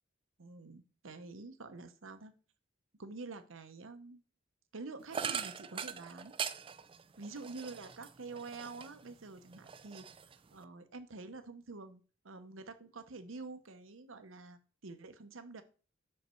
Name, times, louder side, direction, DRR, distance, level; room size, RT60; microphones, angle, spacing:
voice 1, 0.4-2.3 3.0-4.2 4.7-6.3 7.2-10.1 10.5-15.6, right 3 dB, 70° right, 10 dB, 0.9 m, -47 dB
sound 1, 5.1-9.1 9.5-10.6, right 7 dB, 25° right, 0.3 m, -41 dB
5.8 x 5.3 x 4.4 m, 0.37 s
head